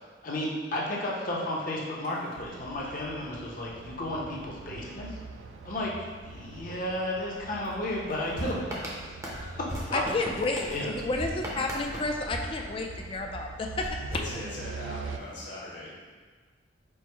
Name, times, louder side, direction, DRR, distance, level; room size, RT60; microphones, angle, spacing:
voice 1, 0.2-5.2 5.6-5.9 6.2-10.0 10.7-10.9, left 1 dB, 45° left, -3 dB, 0.7 m, -33 dB
sound 1, 2.4-15.2, right 4 dB, 90° right, 0.3 m, -44 dB
sound 2, 8.4-13.2 13.8-15.0, right 1 dB, 15° right, 0.6 m, -38 dB
voice 2, 9.9-14.1, left 2 dB, 30° left, 2 dB, 0.3 m, -31 dB
voice 3, 14.1-15.9, left 1 dB, 75° left, -6 dB, 1.5 m, -40 dB
4.5 x 2.1 x 4.4 m, 1.5 s
head